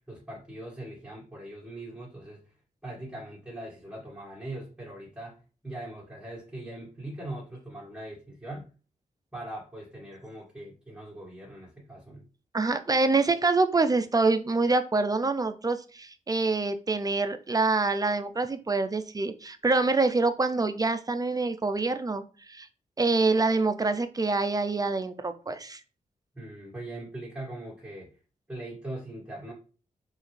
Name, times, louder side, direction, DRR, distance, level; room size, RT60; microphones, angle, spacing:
voice 1, 0.1-2.4 2.8-5.4 5.6-8.7 9.3-12.2 26.3-28.2 28.5-29.5, right 1 dB, 5° right, -7 dB, 1.8 m, -41 dB
voice 2, 12.5-22.2 22.5-22.7 23.0-25.8, right 3 dB, 25° right, 9 dB, 0.5 m, -26 dB
4.4 x 3.4 x 3.3 m, 0.36 s
wide cardioid pair, 95°, 15 cm